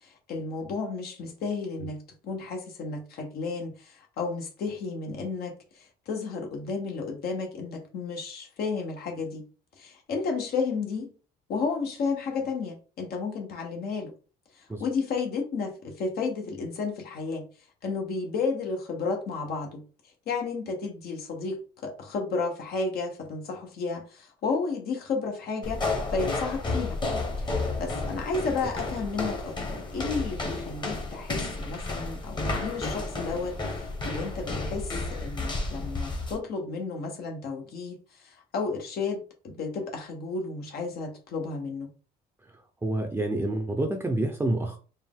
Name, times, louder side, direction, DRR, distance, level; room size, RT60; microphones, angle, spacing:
voice 1, 0.0-9.4 9.8-11.1 11.5-14.1 14.5-17.5 17.8-27.0 27.4-41.9, left 4 dB, 65° left, 1.2 m, -32 dB
sound 1, 25.6-36.4, left 2 dB, 25° left, 1.1 m, -32 dB
voice 2, 42.5-44.8, right 2 dB, 10° right, 0.6 m, -28 dB
4.5 x 2.5 x 3.6 m
cardioid pair, 110°, 17 cm